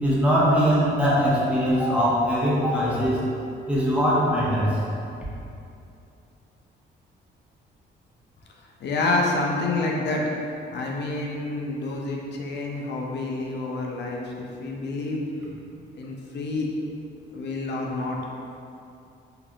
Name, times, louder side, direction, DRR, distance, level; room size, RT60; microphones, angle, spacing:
voice 1, 0.0-3.2 3.7-4.8, equal, 5° right, -8 dB, 0.9 m, -21 dB
voice 2, 8.8-10.3 10.7-15.2 15.9-16.7 17.3-18.2, left 2 dB, 60° left, -1 dB, 0.5 m, -28 dB
3.2 x 2.7 x 2.4 m, 2.6 s
cardioid pair, 90°, 20 cm